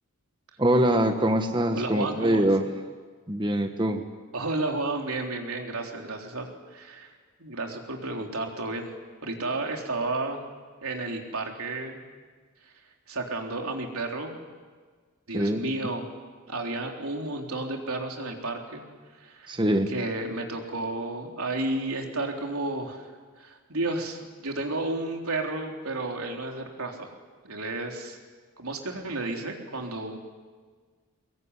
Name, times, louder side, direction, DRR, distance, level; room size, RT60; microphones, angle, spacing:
voice 1, 0.6-2.6 3.3-4.0 15.3-15.6 19.5-19.9, right 1 dB, 20° right, 5 dB, 1.3 m, -23 dB
voice 2, 1.7-2.5 4.3-7.1 7.4-8.9 9.2-10.4 10.8-12.0 13.1-14.4 15.3-16.0 16.5-18.8 19.2-19.6 19.9-23.1 23.4-27.1 27.4-28.2 28.6-30.2, right 2 dB, 85° right, 2 dB, 3.8 m, -32 dB
23.5 x 22.0 x 9.8 m, 1.5 s
head